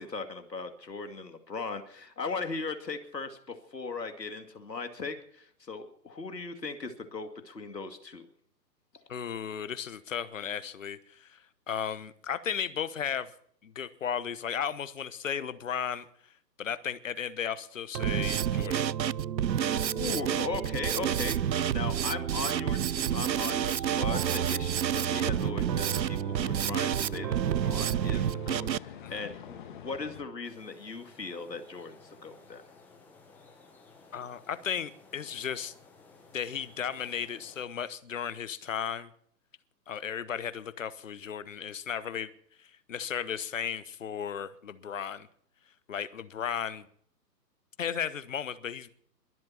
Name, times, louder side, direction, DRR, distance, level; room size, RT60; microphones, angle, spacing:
voice 1, 0.0-8.3 19.9-32.6, left 4 dB, 75° left, 6 dB, 2.5 m, -38 dB
voice 2, 9.1-11.4 11.7-13.3 13.6-16.1 16.6-18.9 29.0-29.2 34.1-35.7 36.3-39.1 39.9-42.3 42.9-45.3 45.9-46.8 47.8-48.9, left 8 dB, 50° left, 14 dB, 1.1 m, -35 dB
Drum kit, 17.9-28.8, right 9 dB, 85° right, 0.5 m, -29 dB
sound 1, 25.2-30.2, left 9 dB, 30° left, 1.7 m, -46 dB
sound 2, 30.4-37.6, left 4 dB, 5° left, 1.1 m, -56 dB
22.5 x 7.8 x 5.7 m, 0.64 s
figure-of-eight pair, 135°, 50 cm